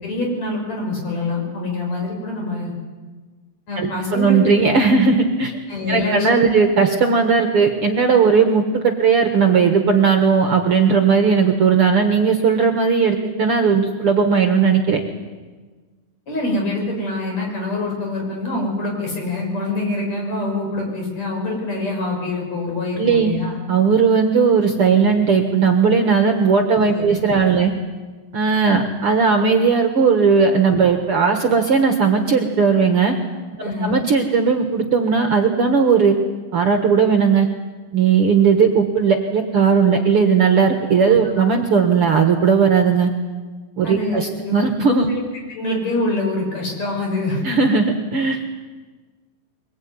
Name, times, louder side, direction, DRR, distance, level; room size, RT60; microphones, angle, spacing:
voice 1, 0.0-2.7 3.7-4.4 5.7-6.6 16.3-23.5 27.0-27.2 27.6-27.7 33.6-34.0 41.2-41.4 43.8-44.5 45.1-45.2 45.5-47.4, left 2 dB, 50° left, 0 dB, 7.3 m, -25 dB
voice 2, 3.8-5.5 5.9-15.0 23.0-23.3 23.7-27.7 28.3-33.2 33.6-36.2 36.5-37.5 37.9-43.1 43.8-45.1 47.4-48.4, right 5 dB, 50° right, 5 dB, 2.0 m, -17 dB
23.5 x 20.5 x 9.6 m, 1.4 s
omnidirectional pair, 3.8 m